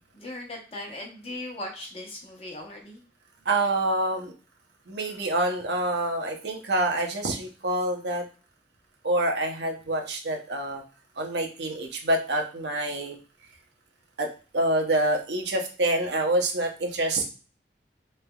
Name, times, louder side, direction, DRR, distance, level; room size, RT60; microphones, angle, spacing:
voice 1, 0.1-3.0, left 1 dB, 35° left, 0 dB, 0.9 m, -38 dB
voice 2, 3.5-4.3 4.9-8.2 9.0-10.8 11.2-13.2 14.2-17.2, right 1 dB, 75° right, 3 dB, 0.8 m, -26 dB
3.9 x 3.2 x 2.3 m, 0.35 s
head